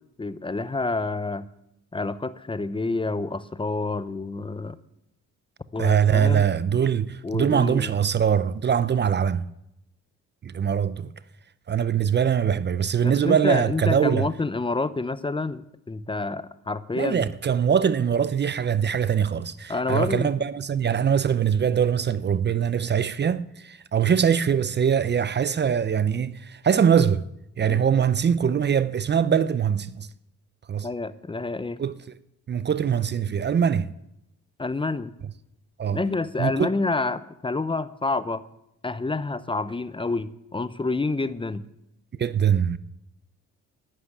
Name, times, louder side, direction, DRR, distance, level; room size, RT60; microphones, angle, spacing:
voice 1, 0.2-1.5 1.9-4.8 5.7-6.5 7.2-7.9 13.0-17.3 19.7-20.3 27.7-27.8 30.8-31.8 34.6-35.1 35.9-38.4 38.8-41.7, left 3 dB, 15° left, 0.7 m, -28 dB
voice 2, 5.8-9.5 10.4-11.1 11.7-14.3 16.9-27.2 27.6-30.1 30.7-30.9 31.8-32.0 32.5-33.9 35.8-36.0 36.4-36.7 42.2-42.8, right 8 dB, 35° right, 0.6 m, -22 dB
11.5 x 9.6 x 9.9 m
cardioid pair, 90°, 30 cm